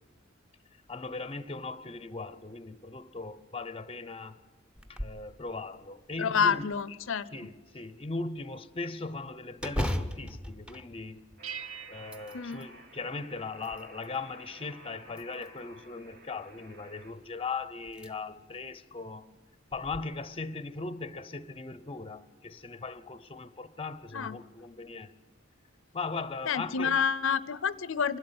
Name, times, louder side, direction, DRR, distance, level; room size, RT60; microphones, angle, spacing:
voice 1, 0.9-4.4 4.9-6.7 7.3-11.3 11.9-19.3 19.7-25.2 25.9-27.0, left 3 dB, 25° left, 0.7 m, -39 dB
sound 1, 4.8-5.3 5.7-5.8 6.4-7.2 9.6-11.6 12.0-12.7 13.3-14.2 15.1-15.8 17.2-17.3 17.9-18.1 18.6-18.7 19.7-20.0, equal, 5° right, 0.9 m, -37 dB
voice 2, 6.2-7.3 12.3-12.7 24.1-24.4 26.5-28.2, left 6 dB, 70° left, 0.6 m, -28 dB
Alarm, 11.4-17.1, right 2 dB, 50° right, 2.8 m, -54 dB
sound 2, 11.4-13.6, right 8 dB, 75° right, 0.8 m, -45 dB
25.5 x 12.0 x 9.5 m
head